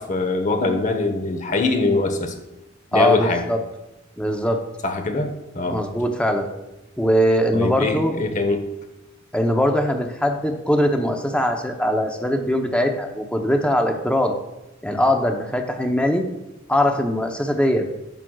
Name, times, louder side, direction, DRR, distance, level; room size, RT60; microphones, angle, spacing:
voice 1, 0.0-2.3 2.9-3.5 4.8-5.8 7.5-8.6, left 2 dB, 40° left, 6 dB, 0.9 m, -23 dB
voice 2, 2.9-3.6 4.2-4.6 5.7-6.5 7.0-8.1 9.3-14.3 14.8-16.3 16.7-17.9, equal, 5° left, 4 dB, 0.7 m, -21 dB
11.0 x 7.4 x 2.3 m, 0.99 s
head